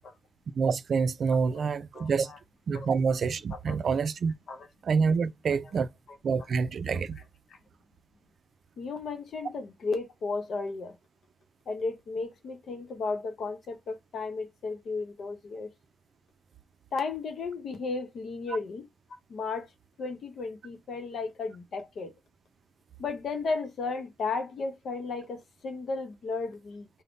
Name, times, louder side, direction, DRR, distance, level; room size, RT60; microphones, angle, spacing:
voice 1, 0.6-2.3 2.7-4.3 4.8-5.9 6.2-7.2, right 5 dB, 65° right, 0.4 m, -27 dB
voice 2, 1.3-1.7 1.9-2.4 2.7-2.9 3.5-3.8 4.5-4.7 6.1-6.2 7.2-7.3 7.5-7.6 8.8-10.9 11.7-15.7 16.9-18.9 19.3-19.7 20.0-22.1 23.0-26.9, left 4 dB, 80° left, 0.8 m, -34 dB
3.5 x 2.1 x 3.9 m
wide cardioid pair, 165°, 0 cm